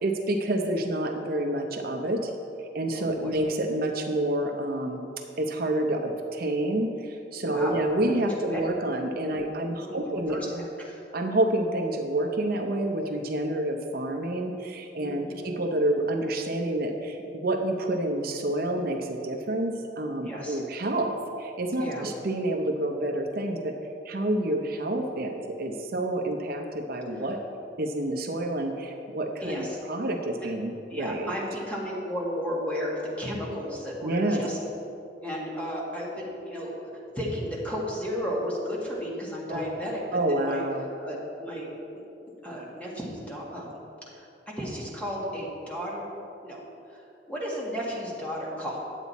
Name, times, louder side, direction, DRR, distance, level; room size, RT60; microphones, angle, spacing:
voice 1, 0.0-2.3 2.7-5.1 5.4-10.6 11.1-23.8 24.0-27.4 27.8-31.3 34.0-34.5 39.5-39.6 40.1-40.9, right 1 dB, 55° right, 3 dB, 0.7 m, -28 dB
voice 2, 3.0-3.4 7.4-7.8 8.5-8.6 9.3-9.4 9.8-11.0 15.0-15.4 20.2-20.6 21.8-22.1 27.1-27.3 29.4-29.8 30.4-30.5 30.9-34.6 35.2-40.6 41.0-41.8 42.4-43.8 44.1-46.1 46.4-46.6 46.9-48.8, equal, 10° left, -4 dB, 1.7 m, -34 dB
9.9 x 8.1 x 4.1 m, 2.7 s
head